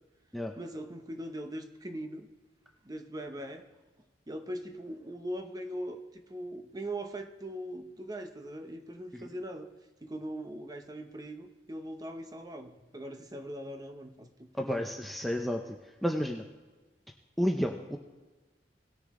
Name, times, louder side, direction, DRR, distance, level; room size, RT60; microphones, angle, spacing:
voice 1, 0.6-2.3 2.8-3.6 4.3-9.7 10.0-14.9, right 1 dB, 20° right, 6 dB, 0.9 m, -40 dB
voice 2, 14.6-15.6 16.0-16.4 17.4-18.0, equal, ahead, 2 dB, 0.6 m, -30 dB
18.5 x 6.6 x 3.7 m, 1.2 s
head